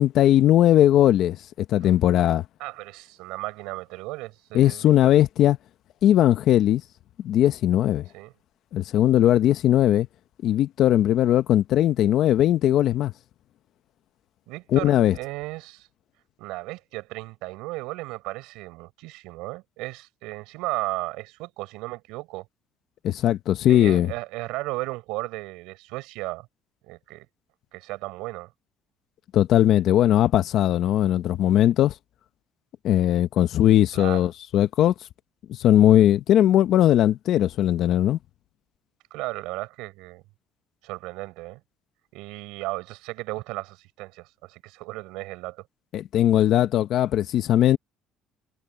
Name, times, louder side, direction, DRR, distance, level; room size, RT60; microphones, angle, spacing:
voice 1, 0.0-2.4 4.5-5.6 6.0-6.8 7.2-8.0 8.7-10.1 10.4-13.1 14.7-15.1 23.0-24.1 29.3-31.9 32.8-34.9 35.6-38.2 45.9-47.8, left 12 dB, 65° left, 0.9 m, -19 dB
voice 2, 2.6-4.9 8.1-8.3 14.5-15.9 16.4-22.5 23.7-26.5 26.9-27.3 27.7-28.5 33.9-34.2 39.1-40.2 40.8-41.6 42.1-45.6, right 21 dB, 90° right, 5.1 m, -35 dB
cardioid pair, 110°, 0 cm